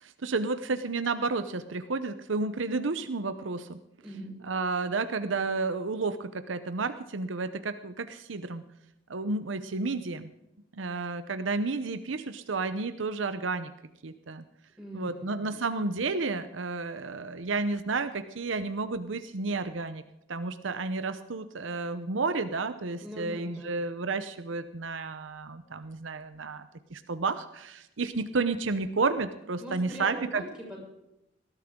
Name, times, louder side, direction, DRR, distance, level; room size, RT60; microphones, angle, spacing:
voice 1, 0.0-3.8 4.4-8.6 9.1-10.3 10.7-13.7 14.0-14.4 14.9-20.0 20.3-26.7 26.9-30.4, right 3 dB, 75° right, 11 dB, 0.8 m, -31 dB
voice 2, 4.0-4.3 14.8-15.5 23.0-23.8 29.6-30.8, equal, 5° right, -4 dB, 6.8 m, -41 dB
19.5 x 12.5 x 3.7 m, 0.89 s
head